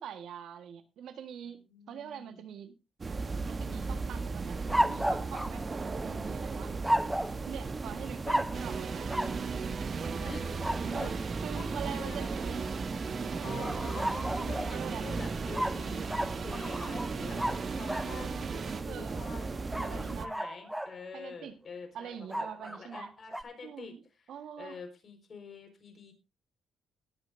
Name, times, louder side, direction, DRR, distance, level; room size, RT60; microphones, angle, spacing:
voice 1, 0.0-2.7 3.4-5.7 6.0-6.7 7.5-9.1 10.0-10.4 10.8-12.6 13.2-13.9 14.7-15.1 18.9-19.2 19.8-20.3 21.1-21.5 21.9-23.1 23.6-24.0 24.3-24.8, right 8 dB, 75° right, 8 dB, 1.6 m, -44 dB
voice 2, 1.6-2.4 8.0-8.4 10.2-10.5 11.0-11.1 11.5-12.3 13.4-23.9 24.6-26.1, left 5 dB, 45° left, 5 dB, 4.8 m, -47 dB
sound 1, 3.0-20.3, right 4 dB, 30° right, 1.2 m, -37 dB
sound 2, 4.7-6.3 6.8-7.4 8.2-8.6 9.1-9.4 10.6-11.1 13.6-14.8 15.5-18.1 19.7-21.0 22.3-23.4, right 1 dB, 5° right, 0.6 m, -33 dB
sound 3, 8.5-18.8, right 5 dB, 50° right, 1.4 m, -38 dB
20.0 x 9.0 x 2.7 m, 0.27 s
cardioid pair, 90°, 0 cm